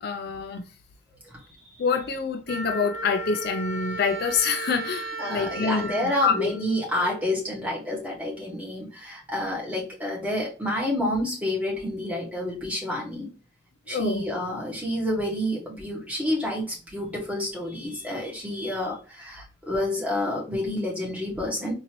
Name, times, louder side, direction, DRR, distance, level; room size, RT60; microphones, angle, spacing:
voice 1, 0.0-0.7 1.8-5.9 6.2-6.5 13.9-14.2, left 5 dB, 55° left, 0.4 m, -26 dB
Wind instrument woodwind instrument, 2.5-7.3, right 2 dB, 70° right, 1.1 m, -36 dB
voice 2, 5.2-13.3 13.9-21.7, left 1 dB, 5° right, 1.5 m, -29 dB
3.9 x 2.8 x 3.0 m
head